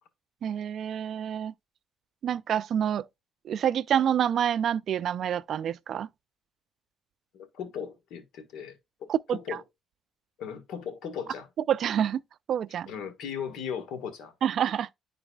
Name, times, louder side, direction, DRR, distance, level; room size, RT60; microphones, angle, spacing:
voice 1, 0.4-1.5 2.2-3.1 3.4-6.1 9.1-9.6 11.7-12.2 12.5-12.9 14.4-14.9, right 9 dB, 60° right, 0.3 m, -27 dB
voice 2, 7.3-9.6 10.4-11.5 12.9-14.3, left 7 dB, 80° left, 1.4 m, -37 dB
11.0 x 4.0 x 2.3 m
cardioid pair, 95°, 0 cm